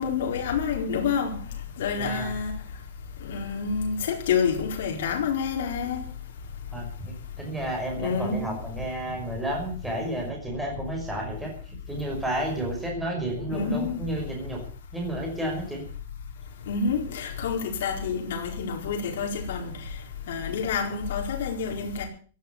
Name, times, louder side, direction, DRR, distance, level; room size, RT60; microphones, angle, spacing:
voice 1, 0.0-1.4 1.8-2.5 3.2-6.0 8.0-8.6 13.5-14.0 16.7-19.7 20.3-22.0, left 6 dB, 60° left, 4.5 m, -28 dB
voice 2, 2.0-2.3 6.7-11.5 11.9-14.6 14.9-15.8, right 1 dB, 5° right, 5.5 m, -31 dB
17.0 x 9.1 x 8.4 m
supercardioid pair, 175°, 0 cm